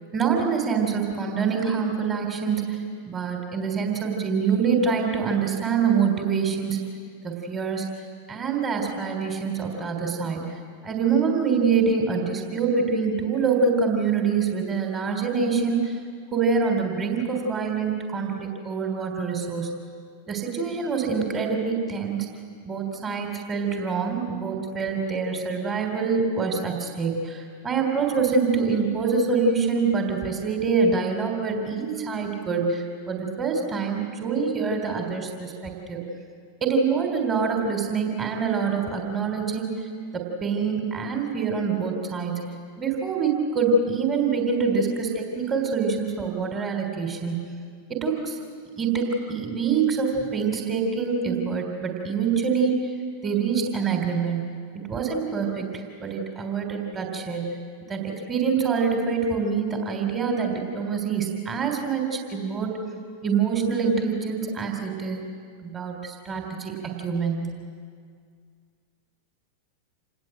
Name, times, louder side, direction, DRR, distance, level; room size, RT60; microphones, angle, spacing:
voice 1, 0.1-2.8 3.1-6.8 7.2-7.9 8.3-10.6 10.8-15.9 16.3-19.7 20.3-22.3 22.6-36.1 36.6-39.7 40.1-42.5 42.8-47.5 47.9-48.4 48.8-52.8 53.2-54.5 54.9-57.4 57.9-62.7 63.2-65.2 65.6-67.5, right 5 dB, 20° right, 3 dB, 3.5 m, -25 dB
27.5 x 19.5 x 7.9 m, 2.1 s
figure-of-eight pair, 90°, 0 cm